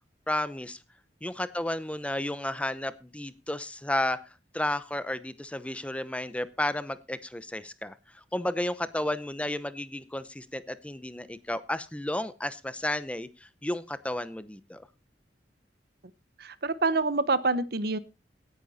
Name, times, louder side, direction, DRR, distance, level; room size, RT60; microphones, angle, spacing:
voice 1, 0.3-0.8 1.2-4.2 4.5-14.9, left 1 dB, 5° left, 14 dB, 0.7 m, -32 dB
voice 2, 16.4-18.0, right 3 dB, 60° right, 16 dB, 0.9 m, -26 dB
17.5 x 10.0 x 4.2 m, 0.31 s
head